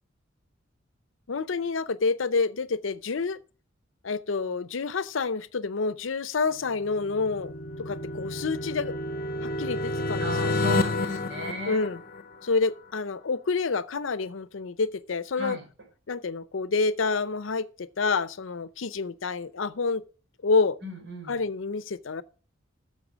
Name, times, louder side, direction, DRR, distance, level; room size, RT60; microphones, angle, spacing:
voice 1, 1.3-3.4 4.0-7.5 7.8-9.0 9.4-10.6 11.7-12.0 12.4-15.6 16.1-20.0 20.4-20.8 21.3-22.2, left 4 dB, 80° left, 0.6 m, -28 dB
sound 1, 6.7-12.5, left 2 dB, 50° left, 0.9 m, -30 dB
voice 2, 10.2-11.9 15.4-15.7 20.8-21.4, equal, 65° right, 4.3 m, -36 dB
11.0 x 7.0 x 5.1 m
head